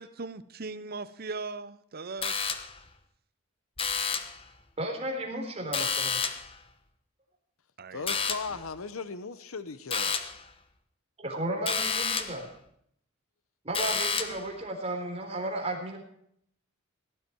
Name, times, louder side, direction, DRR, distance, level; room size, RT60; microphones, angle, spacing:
voice 1, 0.0-2.6 7.8-8.2, right 3 dB, 50° right, 15 dB, 0.8 m, -39 dB
sound 1, 2.2-2.9 3.8-4.4 5.7-6.6 8.1-8.6 9.9-10.4 11.7-12.5 13.7-14.5, left 5 dB, 25° left, 1.1 m, -30 dB
voice 2, 4.8-6.2 11.2-12.5 13.6-16.0, right 1 dB, 30° right, 1 dB, 3.7 m, -34 dB
voice 3, 7.9-10.2, left 4 dB, 90° left, 12 dB, 0.8 m, -37 dB
18.0 x 12.0 x 4.5 m, 0.70 s
head